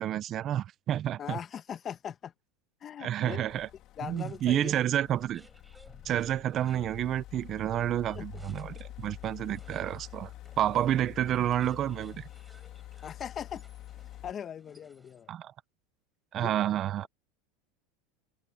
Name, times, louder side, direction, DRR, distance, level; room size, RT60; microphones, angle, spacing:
voice 1, 0.0-1.4 3.0-3.7 4.0-5.4 6.0-10.3 10.6-12.3 15.3-15.5 16.3-17.1, right 11 dB, 40° right, 0.8 m, -29 dB
voice 2, 1.2-2.3 2.8-3.5 4.0-4.7 8.2-8.6 13.0-13.6 14.2-15.3 16.4-16.5, left 9 dB, 30° left, 1.3 m, -40 dB
sound 1, 3.5-14.3, left 14 dB, 50° left, 3.1 m, -47 dB
sound 2, 4.1-15.4, right 1 dB, 5° right, 6.6 m, -61 dB
supercardioid pair, 125°, 0 cm